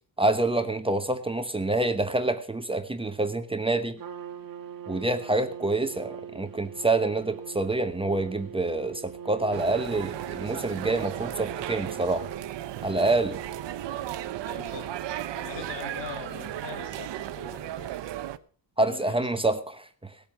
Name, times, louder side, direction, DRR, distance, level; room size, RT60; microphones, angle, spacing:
voice 1, 0.2-4.0 4.9-12.3 12.8-13.4 18.8-20.1, right 2 dB, 15° right, 1.0 m, -27 dB
Trumpet, 4.0-16.1, right 8 dB, 55° right, 1.5 m, -42 dB
sound 1, 9.5-18.4, right 13 dB, 85° right, 1.0 m, -36 dB
voice 2, 14.4-15.0 15.3-18.1 18.8-19.5, left 6 dB, 85° left, 5.2 m, -42 dB
18.5 x 8.7 x 5.8 m
cardioid pair, 150°, 42 cm